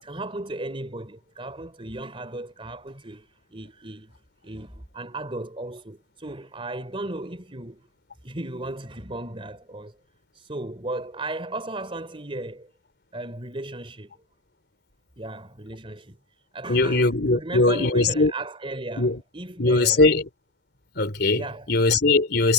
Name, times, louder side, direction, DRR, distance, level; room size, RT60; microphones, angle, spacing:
voice 1, 0.0-4.1 4.4-7.9 8.2-10.0 10.3-12.7 13.1-14.1 15.2-16.2 16.5-20.1 21.3-21.8, right 2 dB, 30° right, 3.4 m, -35 dB
voice 2, 16.7-18.3 19.0-19.2 19.6-20.3 21.0-22.5, left 3 dB, 60° left, 3.3 m, -20 dB
head